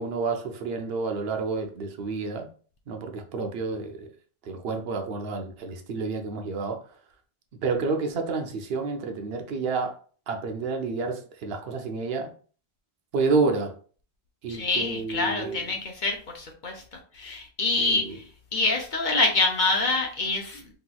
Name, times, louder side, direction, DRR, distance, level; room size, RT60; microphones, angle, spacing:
voice 1, 0.0-2.5 2.9-4.1 4.4-6.8 7.6-10.0 10.3-12.3 13.1-13.8 14.4-15.7 17.8-18.2, right 4 dB, 70° right, 5 dB, 0.8 m, -29 dB
voice 2, 14.5-16.8 17.1-18.2 18.5-20.6, left 3 dB, 55° left, 2 dB, 0.7 m, -26 dB
3.3 x 2.9 x 2.2 m, 0.41 s
omnidirectional pair, 1.1 m